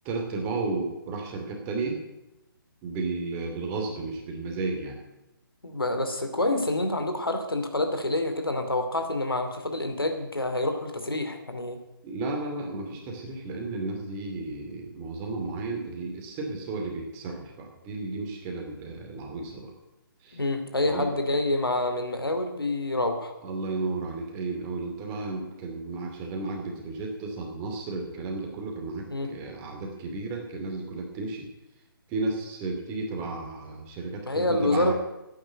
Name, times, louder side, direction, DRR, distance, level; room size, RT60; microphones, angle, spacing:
voice 1, 0.0-2.0 2.8-5.0 12.0-19.7 20.2-20.4 20.8-21.1 23.4-31.5 32.1-34.9, right 3 dB, 20° right, 1 dB, 2.5 m, -33 dB
voice 2, 5.6-11.8 20.3-23.3 29.1-29.3 34.3-34.9, left 2 dB, 80° left, 6 dB, 2.6 m, -27 dB
12.0 x 9.4 x 9.5 m, 0.93 s
figure-of-eight pair, 140°, 12 cm